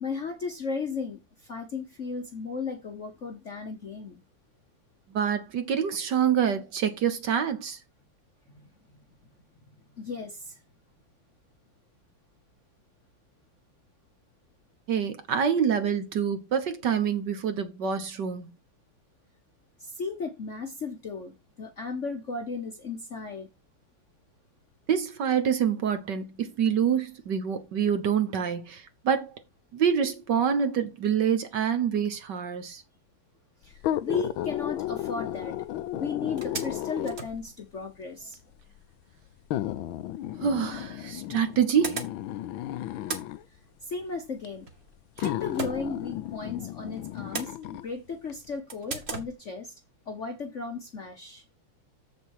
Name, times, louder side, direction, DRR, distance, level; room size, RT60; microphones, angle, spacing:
voice 1, 0.0-4.2 10.0-10.6 19.8-23.5 33.6-35.6 35.9-38.4 43.8-44.7 45.2-49.7 50.1-51.4, left 4 dB, 45° left, 1.0 m, -35 dB
voice 2, 5.1-7.8 14.9-18.5 24.9-29.4 29.7-32.8 40.4-42.0, right 7 dB, 60° right, 1.5 m, -26 dB
sound 1, 33.7-37.4 38.3-38.4 39.5-43.4 44.4-44.5 45.2-47.9 48.3-48.4, left 13 dB, 75° left, 1.3 m, -33 dB
sound 2, 35.6-35.7 36.0-36.1 36.4-38.2 40.2-40.3 41.2-42.6 42.8-46.6 46.9-48.1 48.7-49.3, right 4 dB, 35° right, 1.3 m, -39 dB
7.3 x 7.0 x 4.7 m
omnidirectional pair, 2.4 m